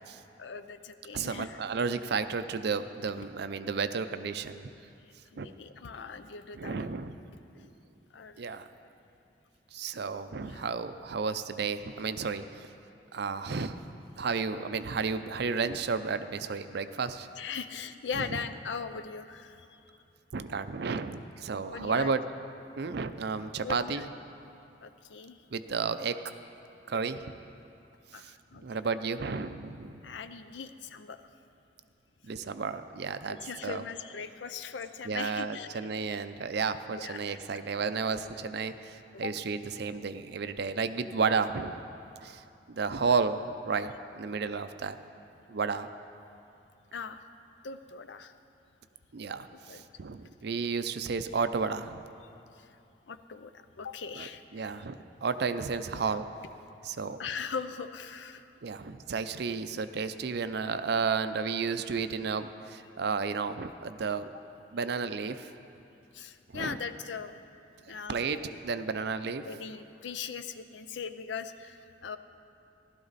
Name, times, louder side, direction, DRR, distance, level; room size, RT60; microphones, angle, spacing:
voice 1, 0.4-1.6 3.2-3.3 5.3-6.9 8.1-8.5 10.4-10.7 17.4-19.8 21.7-22.1 23.6-24.1 24.8-25.4 28.1-28.6 30.0-31.2 33.3-35.7 36.9-37.4 39.1-39.3 46.9-47.2 47.6-48.3 49.5-49.8 52.5-52.8 53.1-54.7 57.2-58.5 66.1-67.3 67.9-68.6 69.4-72.2, left 6 dB, 75° left, 11 dB, 0.6 m, -40 dB
voice 2, 1.1-4.7 5.4-5.5 6.6-7.1 7.6-7.7 8.4-8.7 9.7-12.7 13.1-13.8 14.2-17.3 18.2-18.3 20.3-22.2 22.8-24.1 25.5-26.2 26.9-27.2 28.2-28.3 28.6-30.0 32.2-33.8 35.1-41.8 42.2-42.4 42.7-45.0 45.5-45.9 49.1-52.0 54.2-56.3 56.8-57.2 58.6-64.3 64.7-65.5 66.5-66.8 68.1-68.4 68.6-69.5, right 5 dB, 65° right, 11 dB, 0.5 m, -32 dB
15.5 x 12.0 x 4.1 m, 2.7 s
head